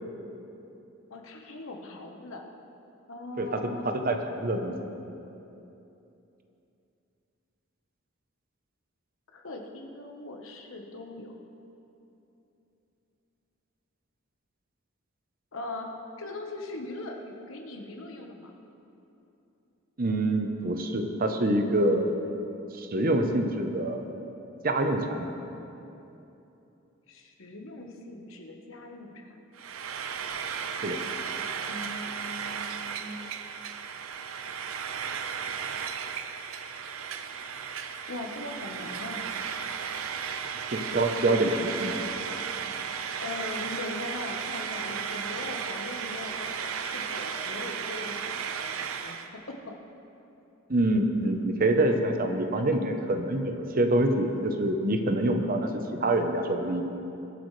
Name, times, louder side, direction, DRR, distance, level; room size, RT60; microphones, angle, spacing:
voice 1, 1.1-2.4 3.1-3.9 9.3-11.3 15.5-15.9 16.2-18.5 27.1-29.4 31.7-33.2 38.1-39.2 43.2-48.3 48.6-49.2 49.5-49.7, left 2 dB, 70° left, 2 dB, 1.2 m, -40 dB
voice 2, 3.4-4.8 20.0-22.2 22.7-24.0 24.6-25.3 30.8-31.0 40.7-41.9 50.7-56.8, right 1 dB, 45° right, 5 dB, 0.8 m, -26 dB
Frying (food), 29.5-49.3, right 7 dB, 80° right, 0.6 m, -35 dB
21.5 x 8.2 x 3.3 m, 2.9 s
head